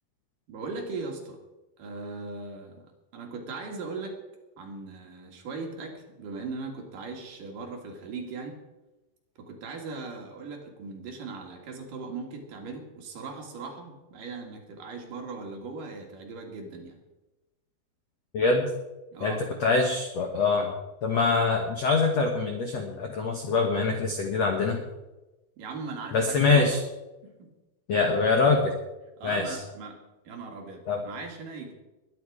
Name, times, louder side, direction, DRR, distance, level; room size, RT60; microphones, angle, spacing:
voice 1, 0.5-1.4 1.8-2.9 3.1-4.2 4.6-8.6 9.4-17.0 19.1-19.4 25.6-26.7 27.2-27.5 29.2-31.7, right 4 dB, 55° right, 2 dB, 3.3 m, -39 dB
voice 2, 18.3-18.7 19.2-20.7 21.0-24.8 26.1-26.8 27.9-28.7 29.2-29.5 30.9-31.0, left 4 dB, 65° left, 3 dB, 1.6 m, -24 dB
21.5 x 10.5 x 4.9 m, 1.1 s
omnidirectional pair, 5.0 m